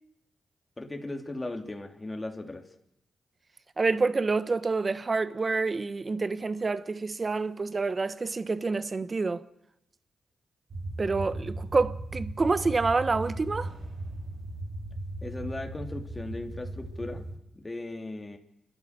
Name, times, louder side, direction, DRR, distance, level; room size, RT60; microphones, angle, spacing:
voice 1, 0.8-2.7 15.2-17.2 17.5-18.4, left 2 dB, 25° left, 3.2 m, -37 dB
voice 2, 3.8-9.4 11.0-13.7, right 3 dB, 40° right, 1.1 m, -27 dB
sound 1, 10.7-17.4, right 2 dB, 70° right, 3.3 m, -37 dB
30.0 x 13.0 x 6.8 m
cardioid pair, 60°, 0 cm